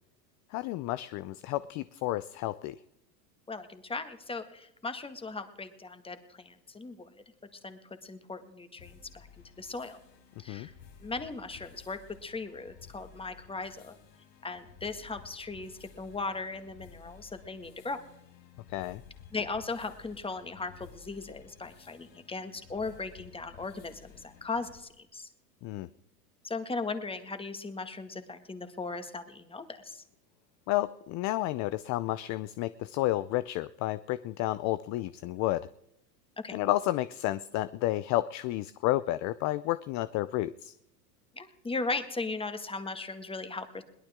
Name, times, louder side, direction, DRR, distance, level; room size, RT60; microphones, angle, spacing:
voice 1, 0.5-2.8 10.5-10.7 18.7-19.0 25.6-25.9 30.7-35.7 36.5-40.7, left 16 dB, 35° left, 16 dB, 0.5 m, -31 dB
voice 2, 3.5-7.1 7.6-9.3 9.6-10.0 10.4-10.7 11.0-13.9 14.4-18.0 19.3-25.3 26.4-30.0 36.4-36.6 41.4-43.8, left 3 dB, 10° left, 9 dB, 1.8 m, -38 dB
sound 1, 8.8-24.8, left 7 dB, 90° left, 4.5 m, -55 dB
22.5 x 17.5 x 3.7 m, 0.81 s
hypercardioid pair, 110°, 49 cm